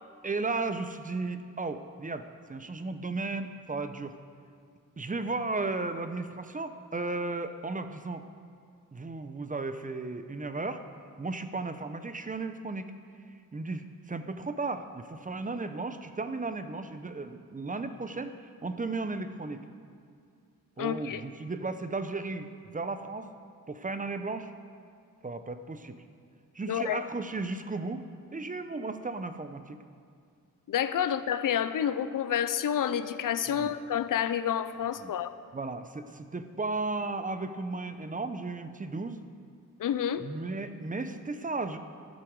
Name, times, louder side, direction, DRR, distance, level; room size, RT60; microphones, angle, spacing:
voice 1, 0.2-4.1 5.0-8.2 8.9-10.8 11.2-12.9 13.5-18.3 18.6-19.6 20.8-23.3 23.7-24.5 25.2-26.0 26.5-28.0 28.3-29.8 33.5-33.7 35.0-35.1 35.5-39.2 40.2-41.8, right 3 dB, 25° right, 9 dB, 0.7 m, -35 dB
voice 2, 20.8-21.2 26.7-27.0 30.7-35.3 39.8-40.2, left 9 dB, 75° left, 12 dB, 0.6 m, -29 dB
13.0 x 12.5 x 4.8 m, 2.2 s
wide cardioid pair, 100°, 33 cm